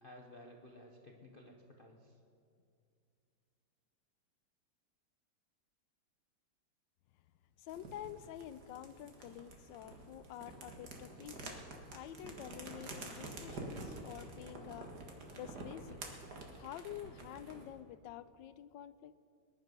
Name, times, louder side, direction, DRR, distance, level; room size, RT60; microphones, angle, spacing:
voice 1, 0.0-2.2, left 1 dB, 35° left, 1 dB, 1.0 m, -55 dB
voice 2, 7.6-11.6 11.9-16.0 16.6-19.2, left 11 dB, 85° left, 15 dB, 1.3 m, -49 dB
sound 1, 7.7-17.7, right 2 dB, 60° right, 2.2 m, -49 dB
20.5 x 10.5 x 5.3 m, 2.5 s
omnidirectional pair, 2.0 m